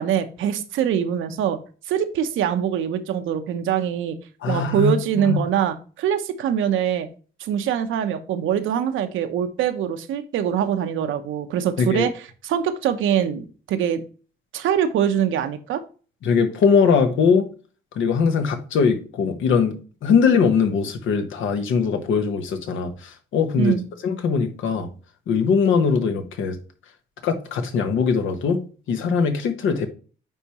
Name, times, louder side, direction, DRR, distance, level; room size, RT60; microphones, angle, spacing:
voice 1, 0.0-1.6 1.9-4.2 4.5-7.1 7.4-12.1 12.4-14.0 14.5-15.8 23.6-23.9, right 9 dB, 80° right, 0.9 m, -23 dB
voice 2, 4.4-5.4 11.8-12.1 16.2-17.5 17.9-19.8 20.0-23.8 24.0-24.9 25.3-26.6 27.2-28.6 28.9-29.9, left 5 dB, 75° left, 1.1 m, -21 dB
9.1 x 3.6 x 3.0 m
cardioid pair, 90°, 20 cm